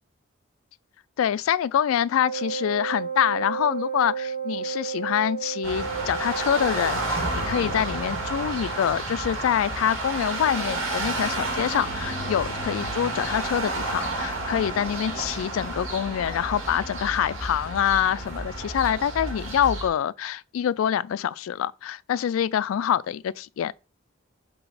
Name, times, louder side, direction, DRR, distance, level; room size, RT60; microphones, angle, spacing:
voice 1, 1.2-23.7, left 9 dB, 85° left, 0.3 m, -25 dB
Wind instrument woodwind instrument, 2.2-8.8, right 6 dB, 45° right, 1.2 m, -33 dB
sound 1, 5.6-19.9, right 2 dB, 90° right, 2.0 m, -31 dB
5.0 x 4.1 x 4.9 m
head